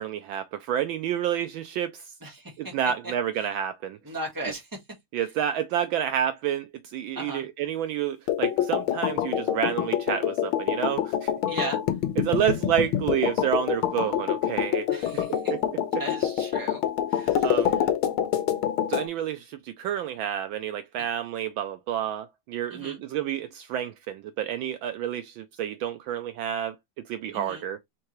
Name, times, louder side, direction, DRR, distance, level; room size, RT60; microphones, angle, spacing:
voice 1, 0.0-2.1 2.6-4.0 4.4-4.5 5.1-11.3 12.2-15.2 15.5-15.6 17.4-17.7 18.9-26.7 27.1-27.8, right 10 dB, 75° right, 1.2 m, -29 dB
voice 2, 2.2-2.7 3.0-3.1 3.4-3.5 4.0-4.8 5.2-5.3 7.1-7.4 11.5-11.8 14.9-15.5 16.0-16.8 17.1-18.0 22.7-23.0 27.3-27.6, right 1 dB, 10° right, 1.5 m, -37 dB
sound 1, 8.3-19.1, left 10 dB, 80° left, 1.6 m, -26 dB
4.6 x 3.6 x 3.0 m
omnidirectional pair, 2.3 m